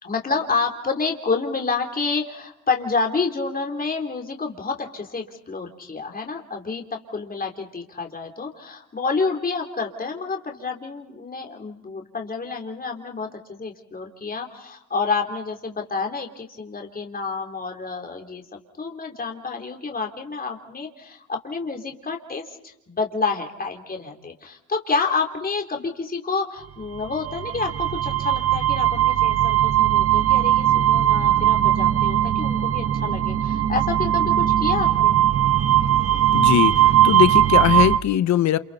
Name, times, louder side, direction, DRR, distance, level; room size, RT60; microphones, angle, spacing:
voice 1, 0.0-18.4 18.8-35.2, left 4 dB, 30° left, 3.7 m, -29 dB
sound 1, 26.9-38.0, right 12 dB, 45° right, 1.1 m, -19 dB
voice 2, 36.3-38.6, left 11 dB, 65° left, 0.9 m, -20 dB
29.5 x 28.5 x 4.2 m
cardioid pair, 90°, 30 cm